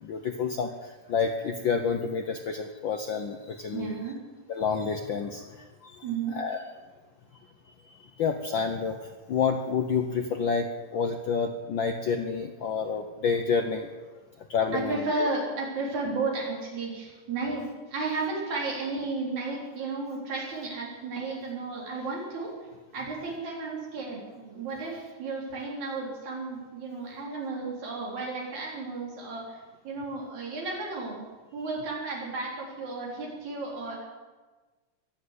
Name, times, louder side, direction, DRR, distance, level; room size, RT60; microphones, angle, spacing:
voice 1, 0.0-4.0 4.5-6.0 6.3-6.6 7.9-13.9 14.5-15.3, left 5 dB, 80° left, 5 dB, 1.0 m, -29 dB
voice 2, 3.7-4.2 6.0-6.4 14.7-31.3 31.5-34.0, right 3 dB, 70° right, -2 dB, 5.0 m, -33 dB
22.5 x 7.8 x 8.1 m, 1.3 s
omnidirectional pair, 3.4 m